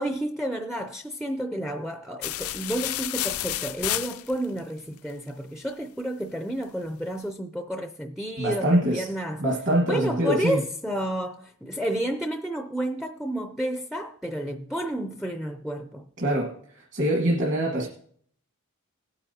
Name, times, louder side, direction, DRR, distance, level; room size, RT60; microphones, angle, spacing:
voice 1, 0.0-9.4 9.8-16.1, right 1 dB, ahead, 0.4 m, -31 dB
sound 1, 2.2-4.6, left 14 dB, 70° left, 0.4 m, -30 dB
voice 2, 8.4-9.1 9.4-10.6 16.2-17.9, right 1 dB, 55° right, 1.4 m, -24 dB
18.5 x 8.7 x 2.7 m
head